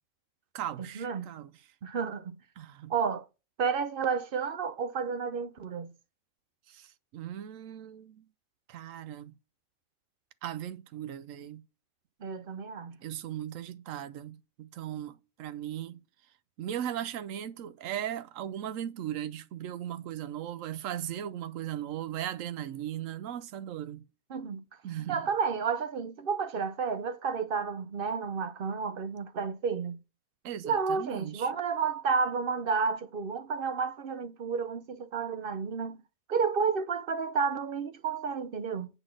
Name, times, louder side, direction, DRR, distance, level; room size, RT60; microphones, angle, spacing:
voice 1, 0.5-1.5 2.6-2.9 6.7-8.3 8.7-9.3 10.4-11.6 13.0-16.0 16.6-24.0 24.8-25.2 30.4-31.5, right 11 dB, 75° right, 1.0 m, -38 dB
voice 2, 1.8-2.3 2.9-3.3 3.6-5.9 12.2-13.0 24.3-24.6 25.1-30.0 30.6-36.0 36.3-38.9, right 5 dB, 55° right, 0.7 m, -31 dB
8.9 x 4.0 x 6.3 m
omnidirectional pair, 1.4 m